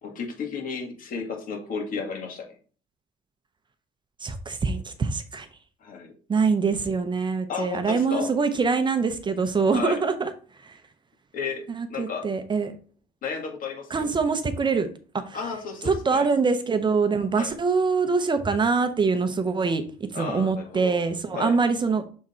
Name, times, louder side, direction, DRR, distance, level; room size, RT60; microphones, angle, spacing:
voice 1, 0.0-2.5 5.8-6.1 7.5-8.3 9.7-10.0 11.3-11.6 11.9-12.3 13.2-14.1 15.3-16.3 17.3-17.5 20.1-21.0 21.3-21.6, left 5 dB, 55° left, 3 dB, 1.9 m, -33 dB
voice 2, 4.2-5.5 6.3-10.3 10.6-10.8 11.7-12.7 13.9-14.9 15.1-15.4 15.8-22.1, right 4 dB, 25° right, 9 dB, 0.7 m, -24 dB
6.3 x 3.6 x 4.3 m, 0.40 s
cardioid pair, 110°, 17 cm